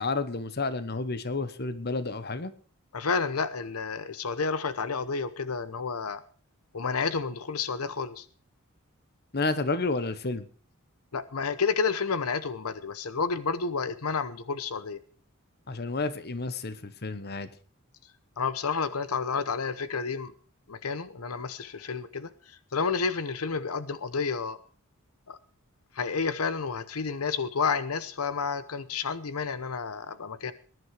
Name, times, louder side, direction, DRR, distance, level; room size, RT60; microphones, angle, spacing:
voice 1, 0.0-2.5 9.3-10.5 15.7-17.5, left 3 dB, 50° left, 13 dB, 1.2 m, -30 dB
voice 2, 2.9-6.2 6.7-8.3 11.1-15.0 18.4-20.3 20.7-24.6 25.3-25.4 25.9-30.5, left 5 dB, 85° left, 14 dB, 0.9 m, -30 dB
19.5 x 11.0 x 4.9 m, 0.42 s
head